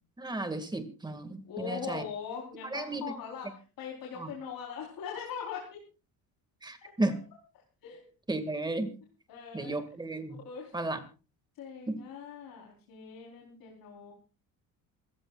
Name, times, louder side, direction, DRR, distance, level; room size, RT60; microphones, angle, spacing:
voice 1, 0.2-2.0 2.7-3.0 4.2-4.3 6.6-7.2 8.3-8.9 9.5-10.4 10.7-11.0 11.9-12.0, right 2 dB, 10° right, 8 dB, 2.1 m, -33 dB
voice 2, 1.5-5.7 6.8-6.9 7.8-8.1 9.3-9.8 10.4-10.7 11.6-14.1, left 7 dB, 70° left, -2 dB, 4.3 m, -41 dB
27.5 x 15.0 x 2.5 m, 0.34 s
cardioid pair, 140°, 36 cm